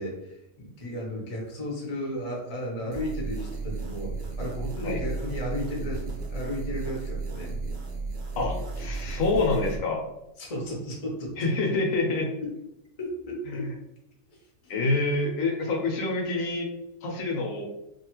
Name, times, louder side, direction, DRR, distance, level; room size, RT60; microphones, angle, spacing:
voice 1, 0.0-7.5 10.4-11.4 12.4-12.5 13.0-13.7 14.3-14.4 14.6-14.7, equal, 35° left, -2 dB, 0.6 m, -34 dB
sound 1, 2.9-9.8, right 3 dB, 60° right, 0.5 m, -34 dB
voice 2, 8.4-10.0 11.4-12.3 13.5-13.6 14.7-16.7 17.0-17.6, left 3 dB, 80° left, 1 dB, 1.0 m, -27 dB
2.8 x 2.3 x 2.9 m, 0.87 s
omnidirectional pair, 1.4 m